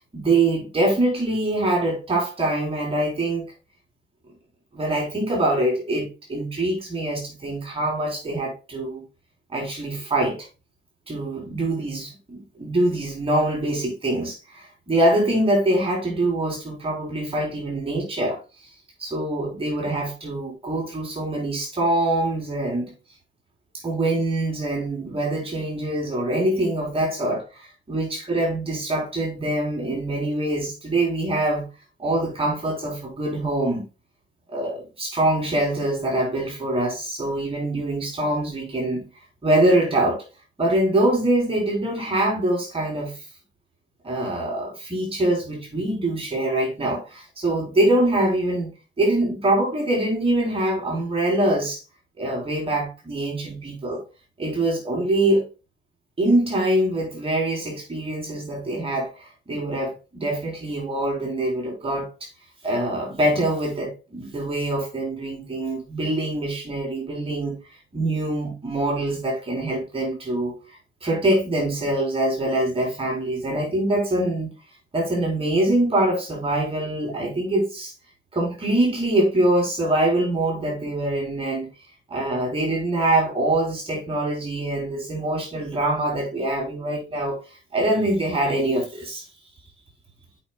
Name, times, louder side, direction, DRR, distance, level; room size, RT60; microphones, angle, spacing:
voice 1, 0.1-3.5 4.7-9.0 9.5-10.5 11.1-18.4 19.0-22.9 23.8-31.7 32.0-33.8 34.5-39.1 39.4-40.2 40.6-43.3 44.0-48.7 49.0-51.8 52.2-54.0 54.4-55.5 56.2-62.3 62.6-67.6 67.9-70.5 71.0-74.5 74.9-77.9 78.3-81.7 82.1-89.2, right 1 dB, 30° right, 3.5 m, -24 dB
8.2 x 5.6 x 2.2 m
cardioid pair, 90°, 20 cm